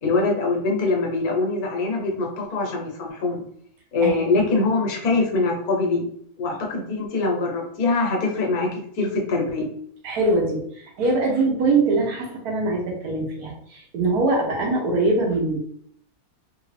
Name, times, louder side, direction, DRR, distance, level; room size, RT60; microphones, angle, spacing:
voice 1, 0.0-3.4 3.9-6.1 6.4-9.7, left 3 dB, 80° left, 0 dB, 1.4 m, -23 dB
voice 2, 4.0-4.5 5.1-5.2 10.0-15.6, right 2 dB, 80° right, 0 dB, 1.4 m, -23 dB
3.3 x 2.6 x 3.2 m, 0.65 s
omnidirectional pair, 1.6 m